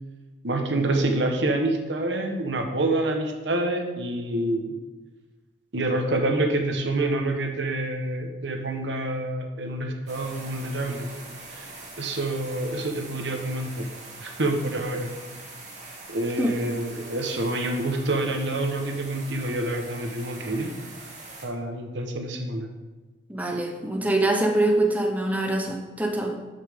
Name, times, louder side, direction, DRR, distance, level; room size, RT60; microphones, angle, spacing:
voice 1, 0.4-4.7 5.7-11.1 11.5-11.7 12.0-13.9 14.2-15.1 16.1-20.7 21.4-22.7, right 2 dB, 85° right, 4 dB, 1.2 m, -27 dB
sound 1, 10.1-21.5, right 2 dB, 40° right, 2.3 m, -43 dB
voice 2, 23.3-26.3, right 2 dB, 10° right, 2 dB, 0.8 m, -24 dB
13.0 x 5.8 x 3.6 m, 1.2 s
head